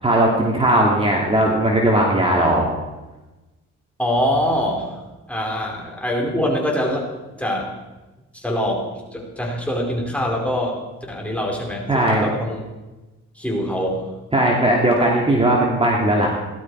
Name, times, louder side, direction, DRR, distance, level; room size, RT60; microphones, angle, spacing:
voice 1, 0.0-2.7 11.9-12.3 14.3-16.3, right 1 dB, 20° right, -2 dB, 2.8 m, -18 dB
voice 2, 4.0-4.9 5.3-7.1 7.3-7.7 8.3-10.8 11.1-12.6 13.4-14.1, equal, 5° left, -1 dB, 4.5 m, -24 dB
18.0 x 12.5 x 4.8 m, 1.1 s
cardioid pair, 90°, 30 cm